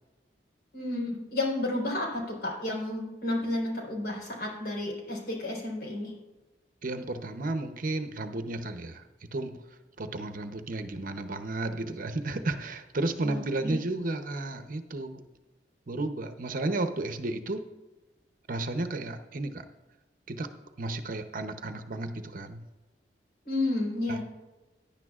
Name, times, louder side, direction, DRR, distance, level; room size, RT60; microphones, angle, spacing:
voice 1, 0.7-6.1 13.2-13.8 23.5-24.2, left 2 dB, 60° left, -1 dB, 4.0 m, -31 dB
voice 2, 6.8-9.0 9.3-9.5 10.0-15.2 15.9-17.6 18.5-19.6 20.3-20.5 20.8-22.6 24.1-24.2, right 2 dB, 50° right, 8 dB, 0.7 m, -33 dB
17.0 x 10.5 x 2.4 m, 1.1 s
head